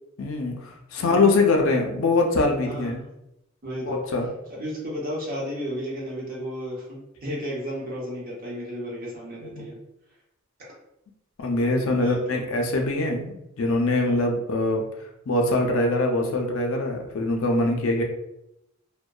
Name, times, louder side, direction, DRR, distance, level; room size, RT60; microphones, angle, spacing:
voice 1, 0.2-3.0 3.9-4.3 9.4-9.6 11.4-14.8 15.3-18.0, left 2 dB, 70° left, 2 dB, 0.4 m, -23 dB
voice 2, 3.6-4.0 4.5-9.7 10.6-10.7 11.8-12.4 14.0-14.3, equal, 45° right, -4 dB, 0.8 m, -33 dB
2.6 x 2.1 x 2.2 m, 0.86 s
head